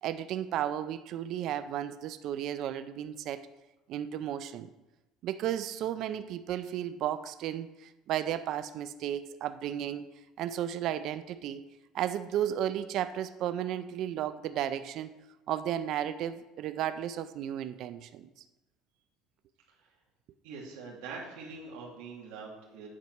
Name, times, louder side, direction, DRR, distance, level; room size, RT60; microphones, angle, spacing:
voice 1, 0.0-3.5 3.9-4.7 5.2-10.1 10.4-11.6 11.9-15.1 15.5-18.3, right 11 dB, 55° right, 12 dB, 0.4 m, -34 dB
voice 2, 20.4-22.9, right 4 dB, 85° right, -3 dB, 1.6 m, -43 dB
8.4 x 4.5 x 5.3 m, 1.0 s
cardioid pair, 135°, 0 cm